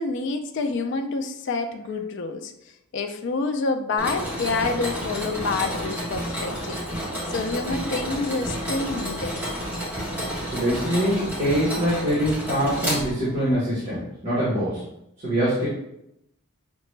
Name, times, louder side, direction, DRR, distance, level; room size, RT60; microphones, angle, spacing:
voice 1, 0.0-2.5 2.9-9.4, left 3 dB, 55° left, 6 dB, 0.3 m, -28 dB
Mechanisms, 4.0-13.5, equal, 10° right, 1.4 m, -30 dB
voice 2, 10.4-14.9 15.2-15.7, equal, 35° right, -9 dB, 1.2 m, -24 dB
5.7 x 2.2 x 3.1 m, 0.82 s
head